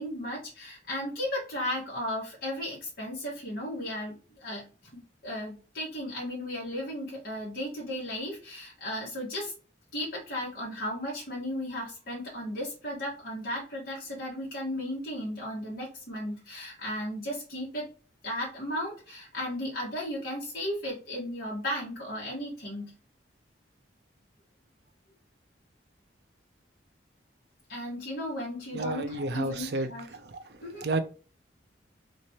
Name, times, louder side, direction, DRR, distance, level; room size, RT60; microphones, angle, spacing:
voice 1, 0.0-4.6 4.9-9.5 9.9-17.9 18.2-22.9 27.7-30.1 30.6-30.8, left 1 dB, 50° left, 1.5 m, -35 dB
voice 2, 28.7-29.9 30.8-31.0, right 2 dB, 60° right, 0.5 m, -30 dB
3.2 x 3.1 x 2.8 m
head